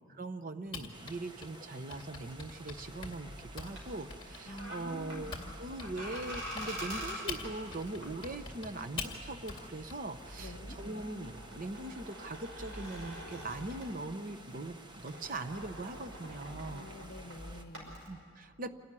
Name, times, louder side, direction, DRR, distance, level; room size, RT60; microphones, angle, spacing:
voice 1, 0.2-14.8 15.0-16.9 18.1-18.7, right 2 dB, 40° right, 10 dB, 0.8 m, -41 dB
Typing, 0.7-5.5 5.8-10.0, left 4 dB, 25° left, 2.1 m, -44 dB
sound 1, 0.9-17.6, right 1 dB, 20° right, 1.1 m, -53 dB
sound 2, 2.3-14.5 14.8-18.1, equal, 75° right, 6.0 m, -46 dB
voice 2, 4.5-5.5 10.4-10.8 16.7-18.0, left 1 dB, 50° left, 9 dB, 0.8 m, -48 dB
27.5 x 12.0 x 9.7 m, 2.2 s
head